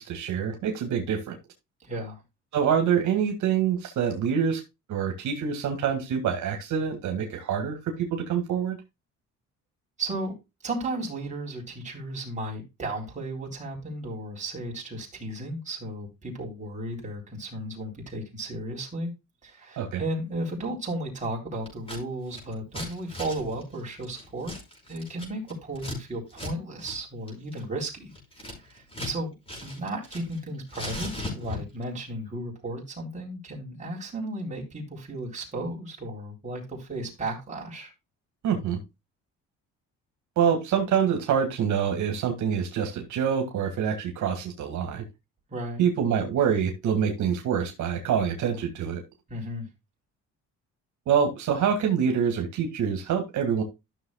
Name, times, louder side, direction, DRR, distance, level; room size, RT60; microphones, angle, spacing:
voice 1, 0.0-1.4 2.5-4.6 4.9-7.8 8.1-8.8 19.8-20.0 38.4-38.8 40.4-45.0 45.8-49.0 51.1-53.6, right 7 dB, 70° right, 4 dB, 2.0 m, -26 dB
voice 2, 1.8-2.2 10.0-10.3 10.6-19.1 19.4-24.5 24.9-28.1 28.5-29.3 29.6-37.9 45.5-45.8 49.3-49.7, right 1 dB, 25° right, -1 dB, 3.8 m, -34 dB
Scissors, 21.7-22.0 22.3-26.0 26.3-26.5 26.8-27.0 27.3-29.2 29.5-30.4 30.7-31.8, left 2 dB, 15° left, 5.1 m, -38 dB
13.5 x 6.5 x 2.3 m, 0.23 s
cardioid pair, 135°, 31 cm